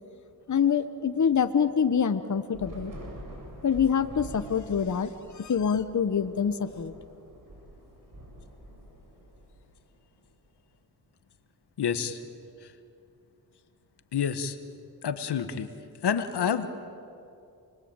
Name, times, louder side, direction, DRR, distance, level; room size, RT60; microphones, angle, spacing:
voice 1, 0.5-2.9 3.6-6.9, left 7 dB, 45° left, 10 dB, 1.2 m, -26 dB
Thunder / Rain, 2.5-10.1, right 1 dB, 55° right, 7.5 m, -46 dB
voice 2, 11.8-12.2 14.1-14.6 15.0-15.7 16.0-16.7, left 7 dB, 80° left, 10 dB, 1.6 m, -28 dB
28.5 x 22.0 x 9.0 m, 2.6 s
cardioid pair, 60°, 39 cm